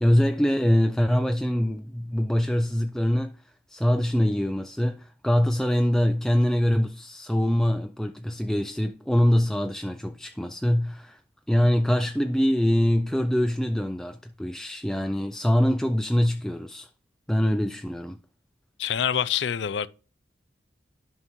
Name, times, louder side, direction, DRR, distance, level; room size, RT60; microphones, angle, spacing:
voice 1, 0.0-3.3 3.7-11.2 11.5-16.9 17.3-18.2, equal, 5° left, 0.3 m, -24 dB
voice 2, 18.8-19.9, left 8 dB, 70° left, 0.4 m, -26 dB
11.5 x 5.4 x 3.0 m
head